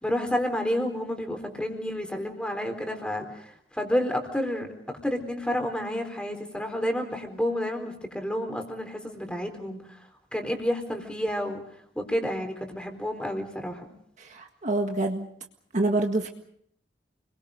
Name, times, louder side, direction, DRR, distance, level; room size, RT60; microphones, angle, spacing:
voice 1, 0.0-10.0 10.3-11.6 11.9-13.9, equal, 5° left, 4 dB, 4.1 m, -30 dB
voice 2, 14.2-15.3 15.7-16.3, right 2 dB, 45° right, 3 dB, 1.7 m, -26 dB
30.0 x 22.5 x 5.2 m, 0.68 s
head